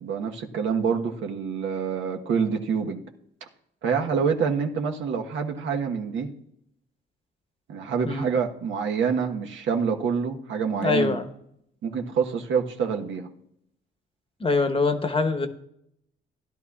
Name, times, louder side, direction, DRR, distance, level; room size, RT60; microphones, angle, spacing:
voice 1, 0.0-3.0 3.8-6.3 7.7-11.2 11.8-13.3, right 6 dB, 75° right, 2 dB, 1.2 m, -26 dB
voice 2, 10.8-11.3 14.4-15.5, left 3 dB, 25° left, 8 dB, 1.1 m, -24 dB
16.5 x 11.0 x 2.4 m, 0.75 s
cardioid pair, 90°, 20 cm